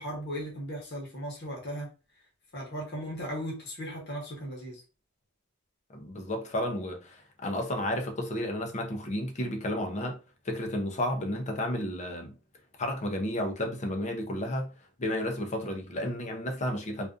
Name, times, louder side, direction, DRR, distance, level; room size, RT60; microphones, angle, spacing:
voice 1, 0.0-1.9 2.5-4.8, equal, 50° left, 0.9 m, -37 dB
voice 2, 5.9-10.2 10.4-12.4 12.8-14.7 15.0-17.1, left 1 dB, 30° left, 0.5 m, -32 dB
2.4 x 2.4 x 2.4 m
head